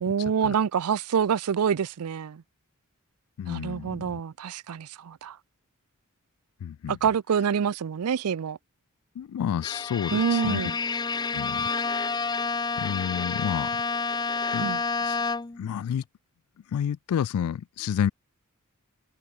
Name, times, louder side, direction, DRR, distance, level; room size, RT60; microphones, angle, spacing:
voice 1, 0.0-2.4 3.5-5.4 6.9-8.6 10.1-10.7 14.6-14.8, right 7 dB, 90° right, 0.5 m, -26 dB
voice 2, 3.4-4.2 6.6-7.0 9.2-10.7 11.3-11.7 12.8-13.7 14.5-14.7 15.0-15.2 15.6-16.0 16.7-18.1, left 8 dB, 75° left, 0.3 m, -30 dB
Bowed string instrument, 9.6-15.7, left 4 dB, 20° left, 0.6 m, -29 dB
head